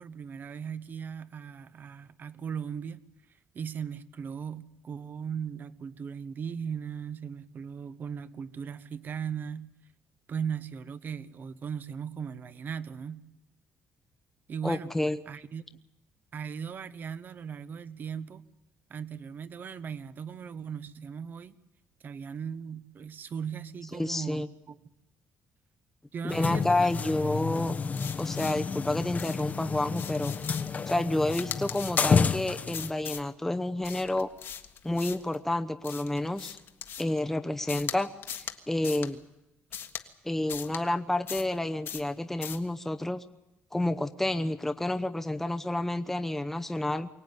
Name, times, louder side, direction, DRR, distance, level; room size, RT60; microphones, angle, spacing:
voice 1, 0.0-3.0 3.5-9.7 10.3-13.2 14.5-15.0 15.3-15.6 16.3-18.4 18.9-21.5 22.0-24.8 26.1-27.2 27.7-27.8, right 7 dB, 45° right, 1.0 m, -38 dB
voice 2, 14.6-15.2 23.9-24.5 26.2-27.7 28.2-30.3 30.9-34.3 34.8-36.6 37.0-39.2 40.2-43.2 43.7-47.1, left 1 dB, 5° left, 0.9 m, -29 dB
sound 1, 26.3-32.9, left 5 dB, 35° left, 0.9 m, -30 dB
sound 2, 27.9-28.7 29.2-29.5 29.9-30.8 31.2-32.1 32.7-33.3 33.8-35.3 35.8-37.2 37.7-38.0 38.2-38.6 38.8-39.1 39.7-40.0 40.5-40.8 41.3-41.6 41.8-42.1 42.4-42.7, left 8 dB, 60° left, 1.6 m, -39 dB
23.5 x 17.5 x 9.5 m
cardioid pair, 110°, 4 cm